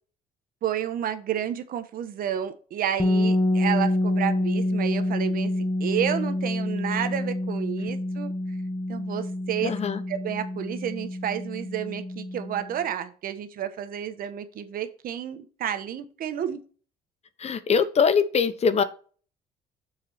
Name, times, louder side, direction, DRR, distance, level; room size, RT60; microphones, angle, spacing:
voice 1, 0.6-8.3 8.9-9.7 10.1-16.6, right 10 dB, 60° right, 10 dB, 1.3 m, -31 dB
sound 1, 3.0-12.7, left 1 dB, 20° left, 1.5 m, -27 dB
voice 2, 9.6-10.0 17.4-18.8, left 6 dB, 40° left, 13 dB, 0.9 m, -22 dB
7.2 x 6.1 x 4.3 m, 0.39 s
cardioid pair, 110°, 17 cm